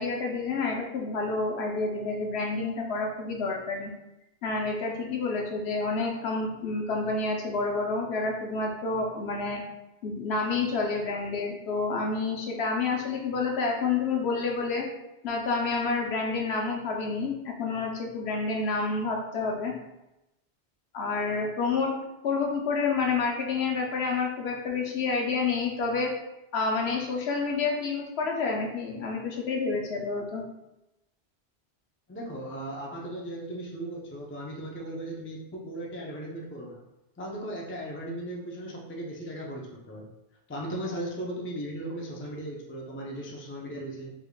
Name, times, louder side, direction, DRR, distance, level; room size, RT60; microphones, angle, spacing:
voice 1, 0.0-3.9 4.4-9.6 10.0-14.9 15.2-19.7 20.9-21.9 22.2-26.1 26.5-30.4, left 4 dB, 80° left, 0 dB, 0.9 m, -29 dB
voice 2, 32.1-36.8 37.2-40.1 40.5-44.1, right 1 dB, 20° left, -2 dB, 0.4 m, -37 dB
3.5 x 3.5 x 2.2 m, 0.93 s
omnidirectional pair, 1.1 m